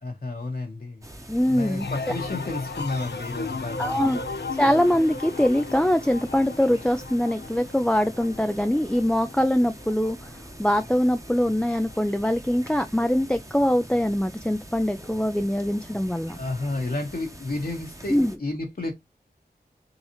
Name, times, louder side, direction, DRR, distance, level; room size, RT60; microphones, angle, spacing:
voice 1, 0.0-1.1 1.5-4.2 16.3-18.9, left 2 dB, 60° left, 1.0 m, -31 dB
sound 1, 1.0-18.4, right 1 dB, 20° right, 1.0 m, -43 dB
voice 2, 1.3-2.2 3.8-4.2 4.6-16.4 18.1-18.3, equal, 5° left, 0.4 m, -23 dB
sound 2, 1.8-11.3 11.7-12.3, left 4 dB, 85° left, 0.5 m, -36 dB
3.9 x 3.9 x 3.0 m
wide cardioid pair, 55°, 17 cm